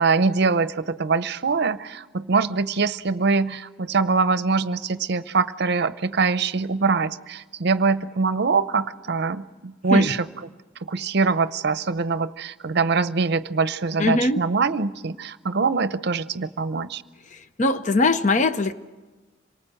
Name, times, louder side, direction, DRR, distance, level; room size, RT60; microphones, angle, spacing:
voice 1, 0.0-10.3 10.8-17.0, right 4 dB, 60° right, 14 dB, 0.7 m, -23 dB
voice 2, 14.0-14.5 17.6-18.7, left 2 dB, 40° left, 11 dB, 0.8 m, -21 dB
27.0 x 19.0 x 7.7 m, 1.3 s
head